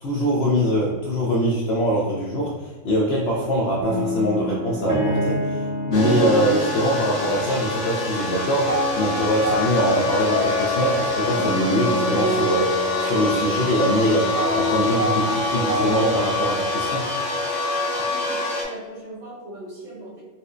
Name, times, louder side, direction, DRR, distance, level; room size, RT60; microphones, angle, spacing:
voice 1, 0.0-5.6 5.9-17.1, equal, 70° left, -4 dB, 0.6 m, -23 dB
sound 1, 3.8-17.8, left 1 dB, 20° right, 0.5 m, -27 dB
sound 2, 5.9-18.6, left 2 dB, 90° left, 1.6 m, -26 dB
voice 2, 18.1-20.2, right 1 dB, 75° right, -6 dB, 1.5 m, -39 dB
4.1 x 2.2 x 2.4 m, 1.3 s
omnidirectional pair, 1.6 m